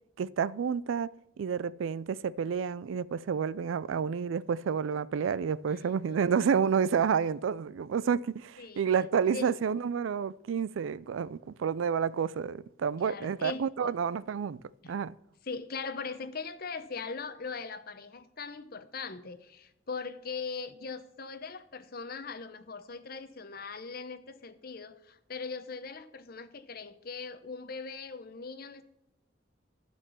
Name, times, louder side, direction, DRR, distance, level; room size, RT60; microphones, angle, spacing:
voice 1, 0.2-1.1 1.4-14.6 14.9-15.1, right 6 dB, 90° right, 0.4 m, -29 dB
voice 2, 5.7-6.7 8.6-8.9 9.3-9.5 13.0-13.9 14.8-14.9 15.4-28.8, left 4 dB, 50° left, 0.8 m, -40 dB
13.0 x 4.5 x 7.0 m
head